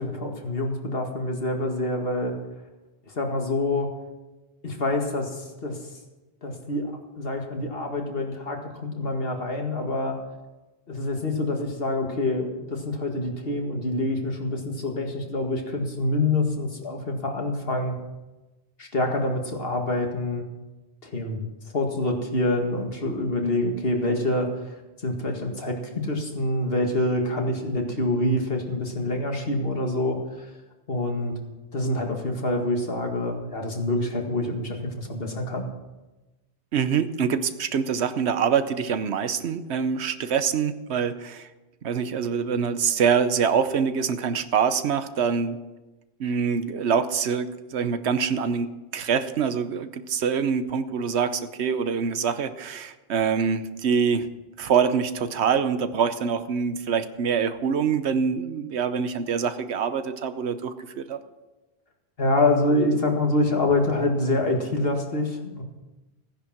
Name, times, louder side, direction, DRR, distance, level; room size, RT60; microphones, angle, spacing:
voice 1, 0.0-2.4 3.1-3.9 4.6-5.8 6.4-10.2 10.9-18.0 18.8-20.5 21.0-21.5 21.7-24.5 25.0-30.5 30.9-31.4 31.7-35.7 62.2-65.6, left 2 dB, 60° left, 2 dB, 2.1 m, -26 dB
voice 2, 36.7-41.5 41.8-45.6 46.2-54.3 54.6-61.2, right 6 dB, 80° right, 11 dB, 1.1 m, -25 dB
15.5 x 10.0 x 6.0 m, 1.1 s
omnidirectional pair, 1.1 m